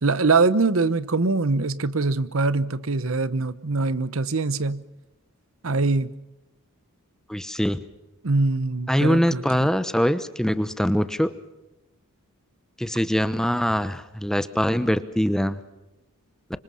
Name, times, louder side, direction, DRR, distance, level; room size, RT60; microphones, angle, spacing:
voice 1, 0.0-4.8 5.6-6.1 8.2-9.7, right 3 dB, 65° right, 1.0 m, -23 dB
voice 2, 7.3-7.8 8.9-11.3 12.8-15.6, equal, ahead, 0.9 m, -23 dB
25.5 x 25.5 x 5.6 m
head